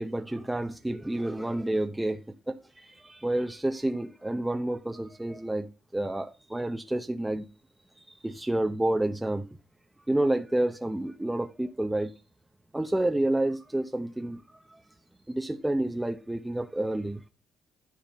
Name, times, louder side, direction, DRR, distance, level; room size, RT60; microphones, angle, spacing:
voice 1, 0.0-2.2 2.5-5.7 5.9-7.5 8.1-9.5 10.1-12.1 12.7-14.4 15.3-17.2, right 1 dB, 10° right, 0.8 m, -29 dB
10.5 x 4.2 x 5.4 m
cardioid pair, 90°, 0 cm